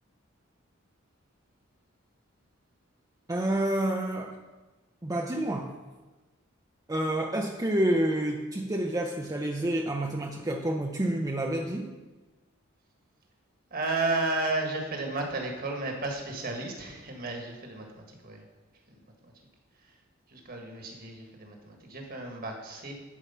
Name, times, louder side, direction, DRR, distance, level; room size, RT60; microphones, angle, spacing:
voice 1, 3.3-4.4 5.0-5.7 6.9-11.9, right 1 dB, 15° right, 1 dB, 0.6 m, -28 dB
voice 2, 13.7-18.4 18.9-19.3 20.3-22.9, right 2 dB, 45° right, 2 dB, 1.6 m, -33 dB
11.0 x 4.8 x 5.6 m, 1.2 s
head